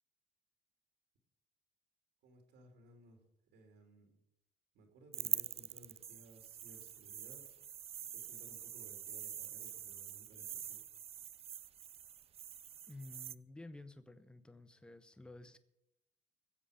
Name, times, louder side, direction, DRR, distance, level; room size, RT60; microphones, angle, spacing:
voice 1, 2.2-4.1 4.7-7.5 8.0-10.8, right 2 dB, 85° right, 3 dB, 2.8 m, -61 dB
sound 1, 5.1-13.3, right 9 dB, 35° right, 0.4 m, -44 dB
voice 2, 12.9-15.6, left 2 dB, 5° left, 12 dB, 0.8 m, -52 dB
21.0 x 7.9 x 5.0 m, 0.87 s
cardioid pair, 110°, 17 cm